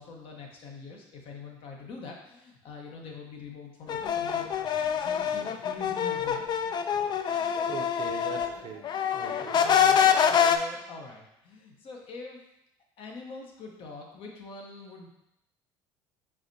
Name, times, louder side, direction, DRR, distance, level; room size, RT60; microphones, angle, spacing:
voice 1, 0.0-4.5 5.0-6.4 9.2-12.4 13.0-15.1, left 4 dB, 60° left, 0 dB, 1.0 m, -44 dB
sound 1, 3.9-8.5 8.8-10.6, left 8 dB, 45° left, 0.3 m, -25 dB
voice 2, 7.2-9.6, right 7 dB, 50° right, 5 dB, 0.6 m, -41 dB
4.7 x 3.5 x 2.7 m, 0.83 s
supercardioid pair, 80°, 11 cm